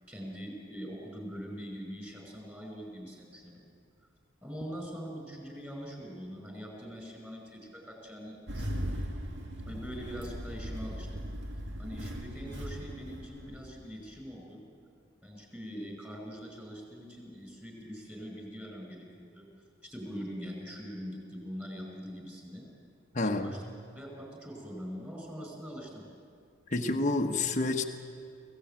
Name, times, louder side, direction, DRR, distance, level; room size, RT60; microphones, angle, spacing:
voice 1, 0.1-3.6 4.4-8.9 9.7-11.2 11.8-14.6 15.2-19.5 19.8-22.7 23.2-23.6 23.9-26.1, equal, 10° right, 1 dB, 5.2 m, -43 dB
Engine starting, 8.5-14.0, equal, 60° right, 2.3 m, -38 dB
voice 2, 23.1-23.5 26.7-27.9, left 2 dB, 40° left, 2 dB, 1.2 m, -28 dB
25.0 x 16.5 x 8.9 m, 2.3 s
head